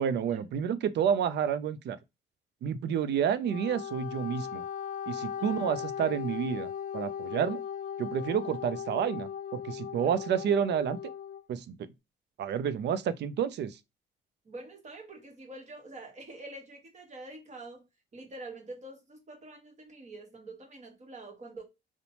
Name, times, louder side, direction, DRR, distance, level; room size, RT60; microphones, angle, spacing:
voice 1, 0.0-2.0 2.6-4.6 5.1-7.6 8.0-11.0 11.5-11.8 12.4-13.8, right 8 dB, 60° right, 0.4 m, -29 dB
Wind instrument woodwind instrument, 3.4-11.4, left 8 dB, 40° left, 0.4 m, -38 dB
voice 2, 5.4-5.8 10.0-10.2 14.4-17.8 18.1-21.6, right 2 dB, 35° right, 1.1 m, -46 dB
2.8 x 2.1 x 2.8 m
cardioid pair, 90°, 20 cm